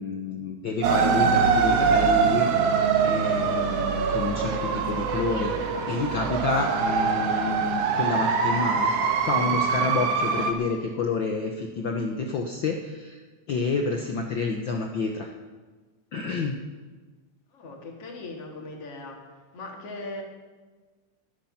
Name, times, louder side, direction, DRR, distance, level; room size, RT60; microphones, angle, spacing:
voice 1, 0.0-5.5 5.9-8.9 9.2-13.2 13.5-15.3 16.1-16.5, left 4 dB, 75° left, 3 dB, 1.1 m, -29 dB
sound 1, 0.8-10.5, right 5 dB, 65° right, 2.0 m, -23 dB
voice 2, 17.5-19.2 19.5-20.2, left 2 dB, 55° left, 1 dB, 2.9 m, -39 dB
20.5 x 8.5 x 5.8 m, 1.3 s
omnidirectional pair, 3.4 m